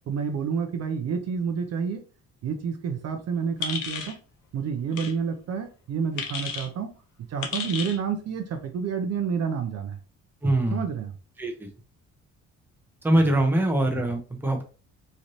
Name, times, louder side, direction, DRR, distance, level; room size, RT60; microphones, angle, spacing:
voice 1, 0.1-2.0 2.4-4.2 4.5-6.9 7.3-10.0 10.7-11.1 13.2-13.3, right 6 dB, 60° right, 6 dB, 0.6 m, -29 dB
sound 1, 3.6-4.2 4.9-5.1 6.2-6.7 7.4-8.0, left 6 dB, 80° left, 0.7 m, -32 dB
voice 2, 10.4-10.8 11.4-11.7 13.0-14.6, right 1 dB, 5° right, 2 dB, 0.8 m, -23 dB
3.2 x 2.5 x 2.6 m, 0.35 s
cardioid pair, 90°, 30 cm